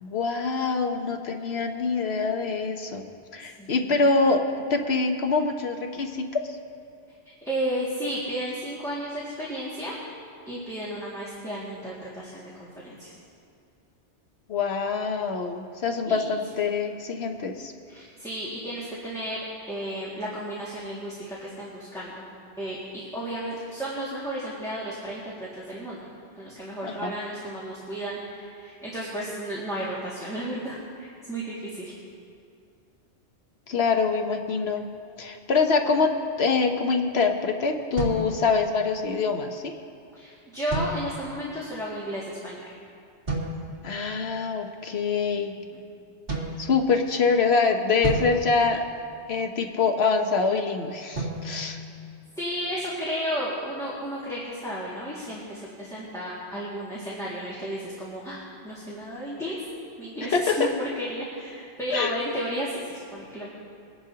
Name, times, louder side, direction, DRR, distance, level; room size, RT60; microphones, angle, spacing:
voice 1, 0.0-3.0 3.3-6.4 14.5-17.7 26.8-27.1 33.7-34.9 35.2-36.1 36.4-39.7 43.8-45.5 46.6-48.8 49.3-51.8 60.3-60.5 61.9-62.1, left 4 dB, 65° left, 4 dB, 1.1 m, -25 dB
voice 2, 3.6-4.0 7.4-10.0 10.5-13.1 16.0-16.4 17.9-22.1 22.6-26.0 26.4-31.9 40.2-42.7 45.6-45.8 52.4-59.6 60.0-63.5, equal, 5° left, -8 dB, 1.9 m, -33 dB
sound 1, 38.0-39.0 40.7-41.5 43.3-43.9 46.3-47.3 48.0-49.5 51.1-52.7, right 2 dB, 55° right, 2.5 m, -33 dB
22.5 x 10.5 x 2.8 m, 2.4 s
omnidirectional pair, 1.2 m